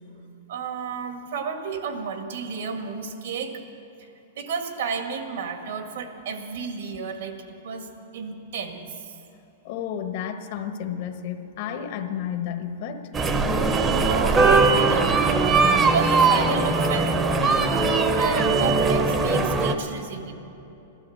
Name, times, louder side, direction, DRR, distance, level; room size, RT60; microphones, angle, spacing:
voice 1, 0.5-3.6 4.4-7.4 7.6-7.9 8.1-9.1 14.0-15.2 15.7-17.7 18.2-20.3, right 5 dB, 70° right, 5 dB, 1.9 m, -31 dB
voice 2, 9.6-13.1, left 8 dB, 50° left, 7 dB, 1.1 m, -31 dB
sound 1, 13.1-19.7, right 3 dB, 15° right, 0.8 m, -20 dB
14.5 x 12.5 x 7.3 m, 2.9 s
hypercardioid pair, 150°, 0 cm